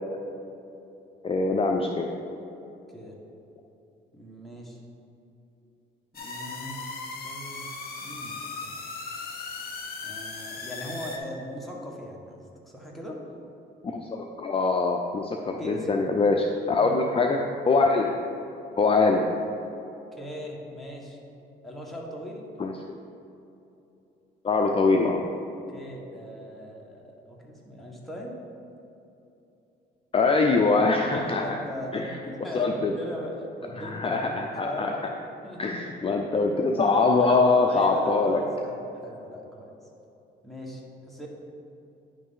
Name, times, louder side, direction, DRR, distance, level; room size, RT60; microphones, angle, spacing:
voice 1, 1.2-2.0 13.8-17.4 17.7-18.1 18.8-19.3 22.6-22.7 24.4-25.2 30.1-31.4 31.9-32.1 32.5-32.9 33.8-34.9 35.6-38.4, left 3 dB, 30° left, 2 dB, 0.5 m, -23 dB
voice 2, 4.1-4.8 6.1-6.8 7.2-7.7 8.0-8.3 8.6-8.8 10.0-13.2 15.6-16.0 16.8-17.1 20.1-21.2 21.6-22.4 25.7-28.4 31.2-33.3 33.6-35.0 35.4-36.2 37.2-39.7 40.4-41.3, equal, ahead, -3 dB, 1.4 m, -39 dB
sound 1, 6.1-11.2, left 4 dB, 50° left, 1.0 m, -37 dB
9.7 x 3.3 x 5.5 m, 2.8 s
cardioid pair, 90°, 20 cm